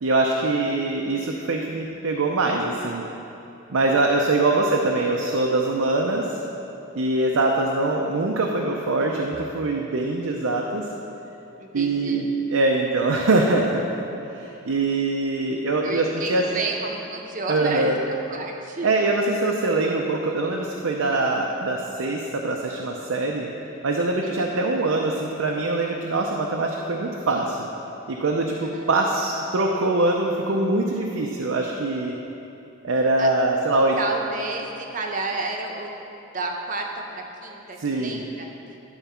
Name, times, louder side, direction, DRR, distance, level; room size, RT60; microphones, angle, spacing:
voice 1, 0.0-3.0 3.7-6.4 7.0-10.9 11.7-13.8 14.3-16.4 17.5-18.0 18.8-23.5 23.8-27.7 28.1-32.1 32.8-34.0 37.8-38.2, right 2 dB, 90° right, 0 dB, 0.6 m, -23 dB
voice 2, 11.6-12.3 15.8-18.9 24.2-24.5 28.6-28.9 33.2-33.3 34.0-35.9 36.3-38.5, right 2 dB, 40° right, 2 dB, 0.7 m, -31 dB
11.0 x 4.0 x 5.7 m, 2.9 s
head